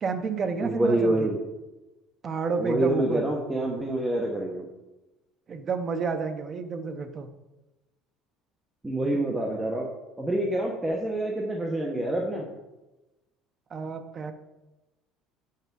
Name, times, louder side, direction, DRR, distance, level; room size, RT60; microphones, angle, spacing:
voice 1, 0.0-1.3 2.2-3.2 5.5-7.3 13.7-14.3, right 5 dB, 30° right, 7 dB, 0.8 m, -30 dB
voice 2, 0.6-1.4 2.6-4.7 8.8-9.9 10.2-12.5, right 1 dB, 10° right, -1 dB, 1.1 m, -27 dB
8.3 x 5.7 x 6.2 m, 1.0 s
cardioid pair, 155°, 0 cm